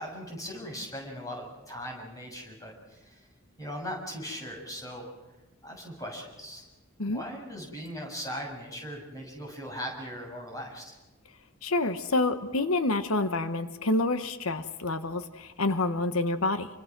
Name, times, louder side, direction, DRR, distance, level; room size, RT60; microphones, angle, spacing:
voice 1, 0.0-3.3 3.6-5.1 5.6-6.6 7.1-10.9, equal, 15° left, 1 dB, 7.0 m, -39 dB
voice 2, 11.6-16.7, left 2 dB, 90° left, 10 dB, 1.3 m, -28 dB
28.5 x 25.0 x 6.1 m, 1.1 s
head